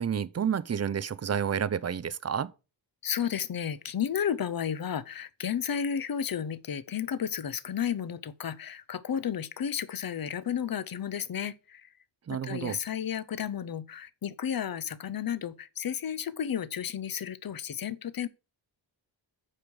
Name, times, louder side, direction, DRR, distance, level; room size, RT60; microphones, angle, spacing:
voice 1, 0.0-2.5 12.3-12.8, right 8 dB, 35° right, 0.4 m, -30 dB
voice 2, 3.0-11.9 12.3-18.3, left 8 dB, 50° left, 0.7 m, -32 dB
8.8 x 4.8 x 6.1 m
wide cardioid pair, 165°, 45 cm